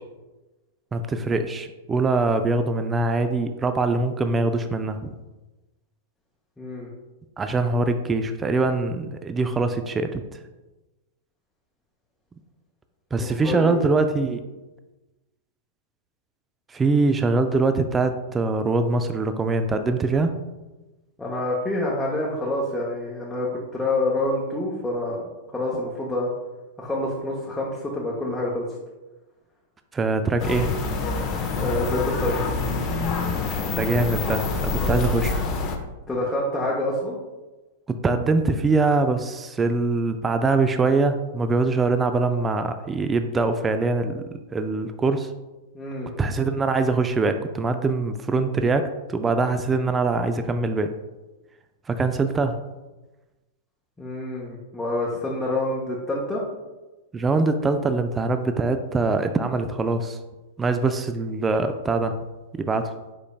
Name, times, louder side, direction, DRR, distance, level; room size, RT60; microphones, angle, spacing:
voice 1, 0.9-5.1 7.4-10.2 13.1-14.4 16.7-20.4 29.9-30.8 33.7-35.4 38.0-44.2 44.5-45.3 46.2-50.9 51.9-52.6 57.1-60.2 60.6-62.2 62.5-63.0, right 3 dB, 20° right, 8 dB, 0.3 m, -23 dB
voice 2, 6.6-6.9 13.1-13.8 21.2-26.3 26.8-28.6 31.6-32.4 34.7-35.0 36.1-37.2 45.7-46.1 54.0-56.4, left 2 dB, 10° left, -5 dB, 0.8 m, -27 dB
sound 1, 30.4-35.8, left 3 dB, 40° left, 0.6 m, -26 dB
5.1 x 3.8 x 2.3 m, 1.1 s
hypercardioid pair, 110°, 0 cm